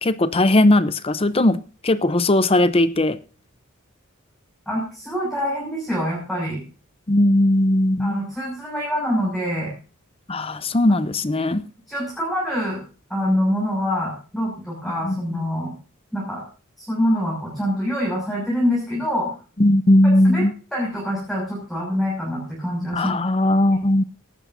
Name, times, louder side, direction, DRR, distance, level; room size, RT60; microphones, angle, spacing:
voice 1, 0.0-3.2 7.1-8.2 10.3-11.6 15.0-15.2 19.6-20.5 22.9-24.0, left 1 dB, 25° left, 0.7 m, -18 dB
voice 2, 4.7-6.6 8.0-9.7 10.9-11.0 11.9-12.8 13.1-15.7 16.1-16.4 16.8-19.3 20.2-20.4 20.7-23.1, equal, ahead, 6.1 m, -25 dB
18.5 x 12.5 x 2.7 m
head